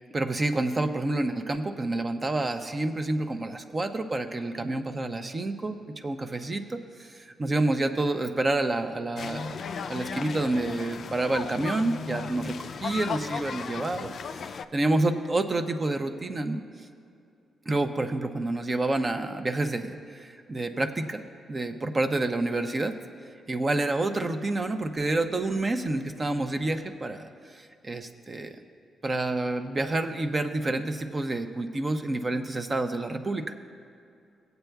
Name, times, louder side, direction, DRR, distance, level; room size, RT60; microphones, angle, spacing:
voice 1, 0.1-16.6 17.7-21.2 21.5-23.0 23.5-28.6 29.0-33.6, right 2 dB, 35° right, 7 dB, 0.7 m, -28 dB
sound 1, 9.2-14.6, left 6 dB, 65° left, 0.3 m, -36 dB
18.0 x 8.0 x 2.3 m, 2.5 s
cardioid pair, 75°, 0 cm